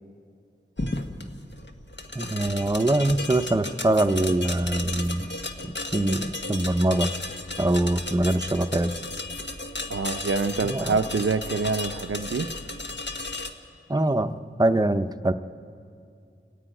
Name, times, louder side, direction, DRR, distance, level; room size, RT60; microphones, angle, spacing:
sound 1, 0.8-13.5, left 2 dB, 60° left, 1.5 m, -34 dB
voice 1, 2.1-5.3 5.9-7.1 7.6-8.9 10.6-10.9 13.9-15.3, right 1 dB, 20° right, 8 dB, 0.7 m, -23 dB
voice 2, 9.9-12.5, right 4 dB, 85° right, 9 dB, 0.7 m, -26 dB
30.0 x 9.9 x 9.2 m, 2.4 s
wide cardioid pair, 50°, 21 cm